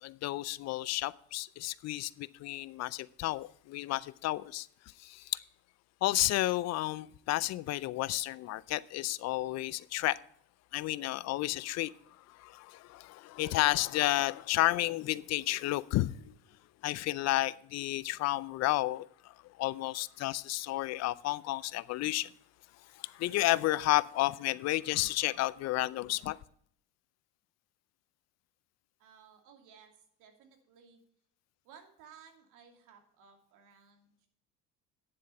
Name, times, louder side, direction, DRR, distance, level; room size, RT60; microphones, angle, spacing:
voice 1, 0.0-4.7 5.0-5.4 6.0-10.2 10.7-11.9 12.3-16.3 16.8-22.3 23.0-26.4, left 17 dB, 55° left, 0.5 m, -32 dB
voice 2, 29.0-29.9 30.2-31.0 31.6-34.3, right 7 dB, 75° right, 2.6 m, -58 dB
9.7 x 7.6 x 5.5 m
cardioid pair, 120°, 31 cm